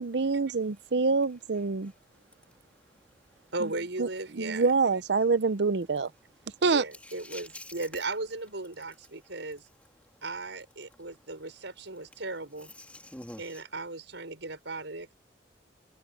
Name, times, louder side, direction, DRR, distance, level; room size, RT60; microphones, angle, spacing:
voice 1, 0.0-1.9 4.0-4.1 4.4-6.1 6.6-6.8, right 4 dB, 70° right, 0.6 m, -26 dB
voice 2, 2.4-3.1 3.4-3.5 7.0-7.7 12.8-13.6, left 1 dB, 10° left, 2.7 m, -47 dB
voice 3, 3.5-4.7 6.6-9.7 10.2-12.7 13.4-15.1, right 2 dB, 90° right, 5.8 m, -37 dB
head